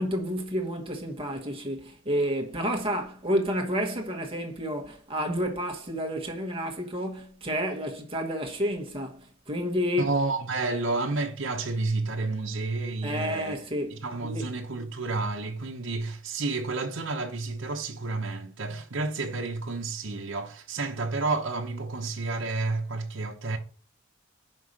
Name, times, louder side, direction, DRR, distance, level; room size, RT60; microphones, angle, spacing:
voice 1, 0.0-10.1 13.0-14.0 14.2-14.5, equal, 25° right, 1.2 m, -30 dB
voice 2, 10.0-13.5 13.9-23.6, right 3 dB, 65° right, 1.0 m, -30 dB
5.6 x 5.4 x 6.4 m
head